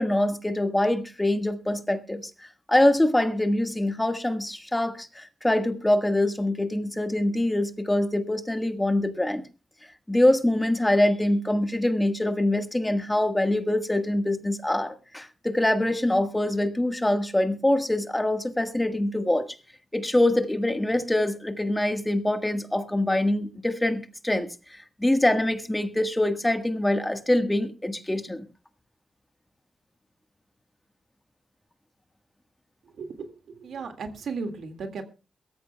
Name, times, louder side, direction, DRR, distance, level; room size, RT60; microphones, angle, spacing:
voice 1, 0.0-2.2 2.7-9.4 10.1-19.5 19.9-28.4, left 1 dB, 10° left, 1.5 m, -24 dB
voice 2, 32.8-35.0, right 4 dB, 85° right, 2.0 m, -36 dB
22.5 x 14.0 x 2.3 m
wide cardioid pair, 105°, 0 cm